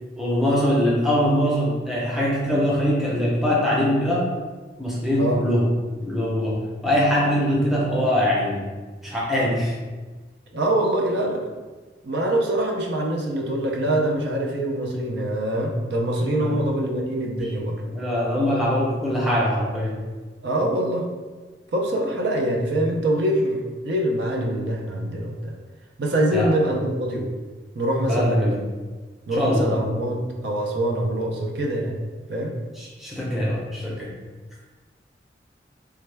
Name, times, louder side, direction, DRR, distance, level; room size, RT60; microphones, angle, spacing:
voice 1, 0.2-4.3 4.8-5.7 6.0-8.6 9.0-9.8 16.4-16.6 17.8-20.0 26.3-26.5 28.1-28.6 29.3-29.7 32.8-34.1, equal, ahead, -6 dB, 0.6 m, -22 dB
voice 2, 10.5-11.5 12.0-17.8 20.4-21.1 21.7-25.5 26.0-27.3 27.7-28.6 29.3-32.0 32.3-32.5, right 1 dB, 70° right, 0 dB, 0.5 m, -24 dB
3.4 x 2.2 x 3.2 m, 1.3 s
head